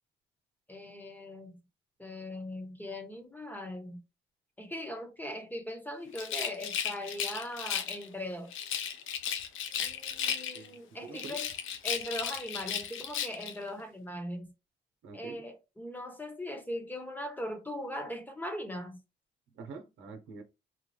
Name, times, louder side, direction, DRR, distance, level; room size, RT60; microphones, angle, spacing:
voice 1, 0.7-1.6 2.0-4.0 4.6-8.5 9.8-11.5 11.8-14.5 15.1-19.0, left 1 dB, 10° left, 1.2 m, -40 dB
Rattle, 6.1-8.1 8.5-10.8 11.1-13.6, left 8 dB, 85° left, 0.7 m, -35 dB
voice 2, 10.5-11.4 15.0-15.5 19.5-20.4, right 4 dB, 85° right, 0.9 m, -46 dB
4.2 x 2.3 x 3.2 m
cardioid pair, 90°, 20 cm